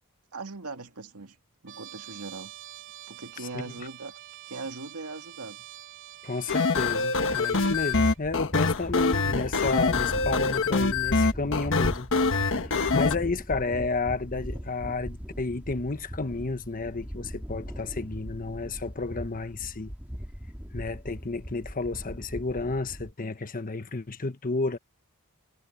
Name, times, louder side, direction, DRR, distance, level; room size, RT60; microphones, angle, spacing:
voice 1, 0.3-1.4 1.6-2.5 3.1-4.2 4.5-5.7, right 3 dB, 90° right, 2.2 m, -40 dB
Trumpet, 1.7-8.2, right 14 dB, 60° right, 3.4 m, -46 dB
voice 2, 3.5-3.9 6.2-12.1 12.3-19.9 20.7-24.8, left 3 dB, 40° left, 1.2 m, -31 dB
sound 1, 6.5-13.2, left 4 dB, 60° left, 1.4 m, -25 dB
sound 2, 7.5-23.1, equal, 5° right, 3.0 m, -39 dB
head